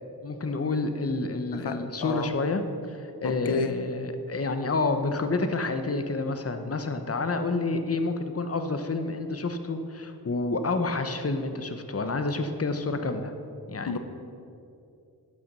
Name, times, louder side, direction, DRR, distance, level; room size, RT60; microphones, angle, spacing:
voice 1, 0.2-2.6 2.9-13.3 13.7-13.9, left 3 dB, 40° left, 7 dB, 0.9 m, -29 dB
voice 2, 1.5-2.4 3.2-3.8 13.9-14.0, left 4 dB, 90° left, 8 dB, 0.8 m, -31 dB
12.0 x 8.4 x 6.2 m, 2.6 s
wide cardioid pair, 85°, 38 cm